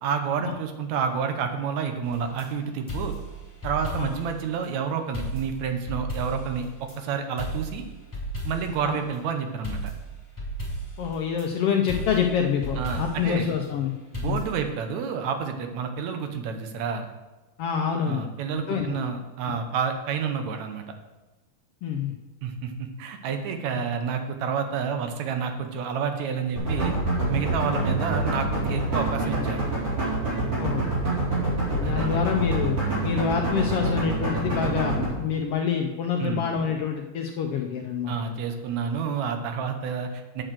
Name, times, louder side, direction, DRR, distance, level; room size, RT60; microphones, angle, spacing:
voice 1, 0.0-3.1 3.6-7.8 8.4-9.9 12.8-13.5 14.1-17.1 18.1-20.8 22.4-26.9 27.3-29.6 31.8-32.2 36.2-36.5 38.1-40.4, right 6 dB, 70° right, 6 dB, 2.2 m, -29 dB
sound 1, 2.0-2.5 2.9-4.3 4.6-4.7 5.1-7.0 7.4-8.8 9.6-11.5 11.9-13.3 14.1-14.7, right 1 dB, 5° left, 3.4 m, -34 dB
voice 2, 11.0-13.9 14.2-14.4 17.6-18.2 18.5-19.0 19.4-19.5 21.8-22.1 27.7-27.8 30.6-30.9 31.7-38.3, left 7 dB, 85° left, 2 dB, 1.3 m, -27 dB
sound 2, 26.6-35.0, right 2 dB, 50° right, 5.0 m, -26 dB
8.9 x 6.4 x 6.3 m, 1.1 s
omnidirectional pair, 3.6 m